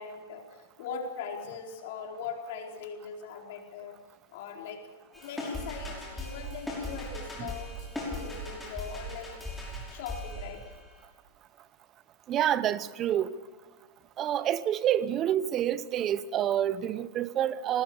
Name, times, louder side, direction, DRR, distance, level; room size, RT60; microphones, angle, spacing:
voice 1, 0.0-4.0 4.3-4.9 5.1-9.4 9.9-10.6, left 6 dB, 60° left, 4.4 m, -40 dB
sound 1, 5.1-11.0, left 1 dB, 5° left, 5.9 m, -38 dB
voice 2, 12.3-13.3 14.2-17.8, right 11 dB, 25° right, 0.7 m, -28 dB
25.5 x 19.0 x 7.1 m
supercardioid pair, 155°, 0 cm